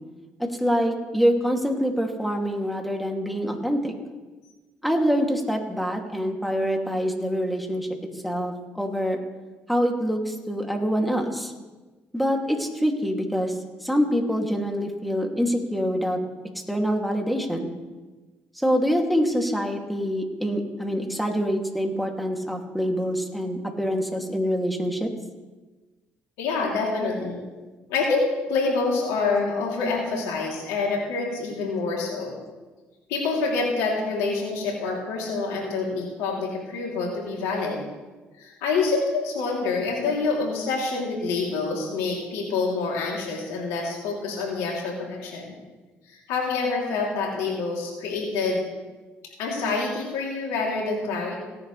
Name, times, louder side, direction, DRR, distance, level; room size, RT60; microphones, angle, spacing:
voice 1, 0.4-3.9 4.8-7.9 8.2-9.2 9.7-11.5 12.1-16.2 16.7-17.7 18.6-25.1, equal, ahead, 2 dB, 2.5 m, -25 dB
voice 2, 26.4-27.4 27.9-32.3 33.1-37.8 38.4-45.6 46.1-48.7 49.4-51.3, left 4 dB, 85° left, -2 dB, 3.0 m, -27 dB
17.5 x 10.5 x 3.3 m, 1.2 s
supercardioid pair, 60°, 5 cm